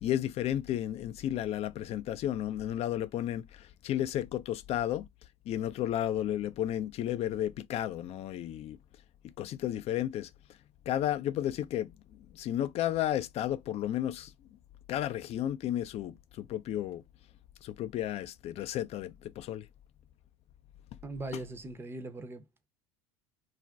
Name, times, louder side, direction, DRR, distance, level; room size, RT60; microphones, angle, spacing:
voice 1, 0.0-5.1 5.5-8.8 9.4-10.3 10.9-14.3 14.9-17.0 17.6-19.7, left 12 dB, 45° left, 0.4 m, -33 dB
voice 2, 21.0-22.4, right 2 dB, 15° right, 0.6 m, -40 dB
2.5 x 2.1 x 3.4 m
hypercardioid pair, 80°, 15 cm